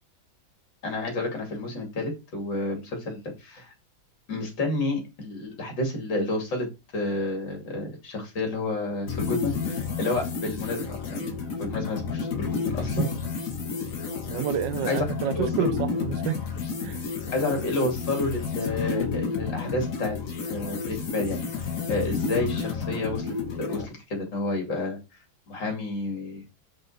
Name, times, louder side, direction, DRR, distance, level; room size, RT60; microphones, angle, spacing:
voice 1, 0.8-3.7 4.3-6.7 6.9-11.3 11.6-13.1 14.9-15.0 15.3-15.7 17.3-20.2 20.5-25.0 25.5-26.4, left 2 dB, 65° left, 3.4 m, -30 dB
sound 1, 9.1-23.9, left 5 dB, 45° left, 1.7 m, -31 dB
voice 2, 14.3-16.4 16.8-17.0, right 10 dB, 70° right, 1.3 m, -29 dB
6.8 x 5.7 x 4.2 m
omnidirectional pair, 2.2 m